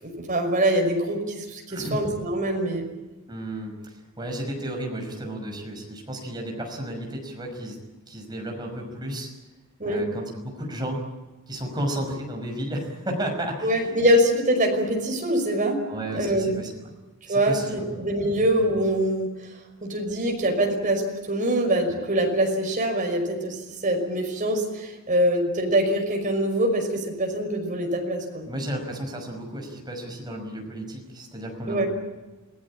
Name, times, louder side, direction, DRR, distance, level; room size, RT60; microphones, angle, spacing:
voice 1, 0.0-2.9 9.8-10.0 13.6-15.9 16.1-16.5 17.3-19.3 19.8-21.0 21.3-23.6 23.8-28.5 31.7-31.9, right 1 dB, 40° right, 2 dB, 5.6 m, -24 dB
voice 2, 1.7-2.0 3.3-7.8 8.1-9.3 9.8-11.0 11.5-13.9 15.9-16.7 17.3-17.9 18.2-18.4 28.5-31.9, right 1 dB, 20° right, 1 dB, 5.7 m, -33 dB
27.5 x 17.5 x 8.7 m, 1.1 s
head